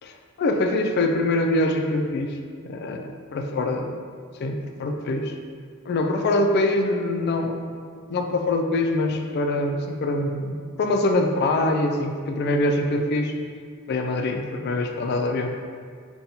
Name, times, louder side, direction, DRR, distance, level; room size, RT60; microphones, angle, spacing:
voice 1, 0.0-2.4 2.6-3.9 4.4-5.4 5.9-7.8 8.1-13.3 13.9-15.5, left 2 dB, 50° left, 4 dB, 0.3 m, -24 dB
5.6 x 2.3 x 2.7 m, 2.1 s
head